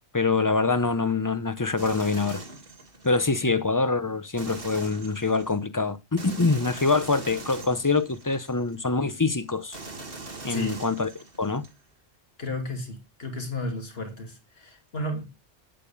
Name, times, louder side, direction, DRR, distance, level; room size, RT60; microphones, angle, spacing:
voice 1, 0.1-2.4 3.0-9.8 10.4-11.1 11.4-11.6, left 3 dB, 20° left, 0.7 m, -25 dB
sound 1, 1.8-3.3 4.4-5.6 6.2-8.8 9.7-11.7, right 3 dB, 55° right, 2.1 m, -42 dB
voice 2, 10.5-10.8 12.4-15.2, left 1 dB, 60° left, 2.9 m, -33 dB
9.2 x 8.6 x 7.1 m
omnidirectional pair, 1.1 m